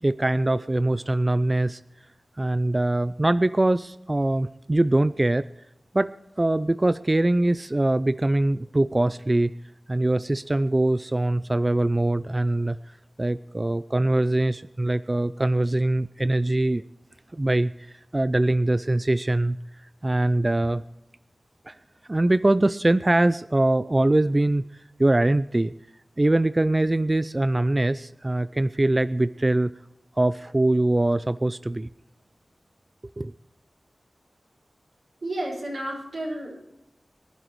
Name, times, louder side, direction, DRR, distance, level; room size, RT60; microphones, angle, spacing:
voice 1, 0.0-1.8 2.4-5.5 5.9-9.5 9.9-12.8 13.2-16.8 17.3-17.7 18.1-19.6 20.0-20.8 21.7-21.8 22.1-24.6 25.0-25.7 26.2-29.7 30.2-31.9 33.2-33.3, right 1 dB, 30° right, 14 dB, 0.4 m, -22 dB
voice 2, 35.2-36.6, right 1 dB, 75° right, -6 dB, 5.1 m, -31 dB
24.0 x 11.0 x 3.1 m, 0.85 s
cardioid pair, 45°, 0 cm